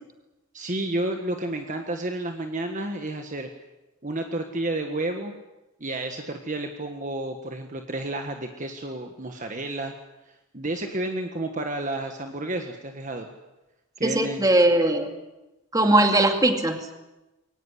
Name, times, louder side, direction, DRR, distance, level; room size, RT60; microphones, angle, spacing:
voice 1, 0.5-3.5 4.0-5.3 5.8-9.9 10.3-13.3 14.0-14.4, right 2 dB, 35° right, 4 dB, 1.6 m, -31 dB
voice 2, 14.0-15.1 15.7-16.9, right 1 dB, 15° right, 5 dB, 2.3 m, -20 dB
22.5 x 18.5 x 9.7 m, 1.0 s
head